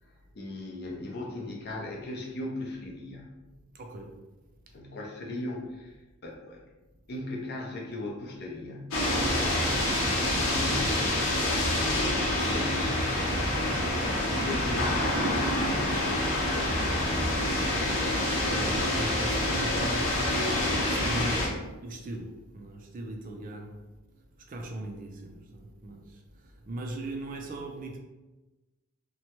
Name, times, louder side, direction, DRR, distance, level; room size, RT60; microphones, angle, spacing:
voice 1, 0.0-3.3 4.7-6.6 7.1-9.0 9.8-13.6 13.9-17.3, left 2 dB, 45° left, -1 dB, 0.5 m, -39 dB
voice 2, 3.7-4.2 18.4-23.8 24.5-28.0, right 1 dB, 40° right, 2 dB, 0.3 m, -38 dB
sound 1, 8.9-21.5, left 1 dB, 70° left, 0.8 m, -27 dB
2.9 x 2.1 x 2.9 m, 1.1 s
head